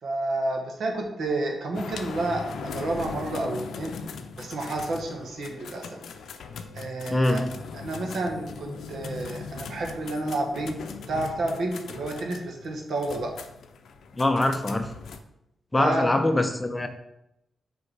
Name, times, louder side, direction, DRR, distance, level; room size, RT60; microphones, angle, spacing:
voice 1, 0.0-4.0 4.4-6.0 6.7-7.4 7.7-10.8 11.1-13.3 15.8-16.1, right 2 dB, 75° right, 2 dB, 1.3 m, -30 dB
sound 1, 1.7-15.2, left 5 dB, 80° left, 0.5 m, -39 dB
voice 2, 7.1-7.5 14.2-14.9 15.7-16.9, left 1 dB, 15° left, 7 dB, 0.6 m, -23 dB
5.2 x 4.7 x 4.7 m, 0.84 s
cardioid pair, 100°, 0 cm